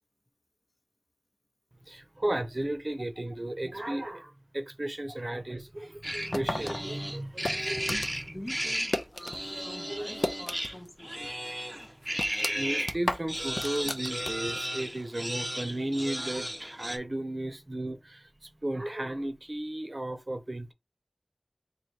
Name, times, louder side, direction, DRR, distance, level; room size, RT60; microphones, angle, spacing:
voice 1, 1.9-8.3 9.5-9.6 9.9-10.1 12.2-20.7, right 1 dB, 55° right, 0.7 m, -35 dB
sound 1, 6.0-12.9 13.3-17.0, equal, 15° right, 0.6 m, -34 dB
sound 2, 6.3-9.4 9.7-10.9 11.2-11.3 11.8-14.6, left 1 dB, 75° left, 0.5 m, -34 dB
voice 2, 8.2-11.4, left 1 dB, 30° left, 0.6 m, -46 dB
3.2 x 2.6 x 4.3 m
wide cardioid pair, 45°, 0 cm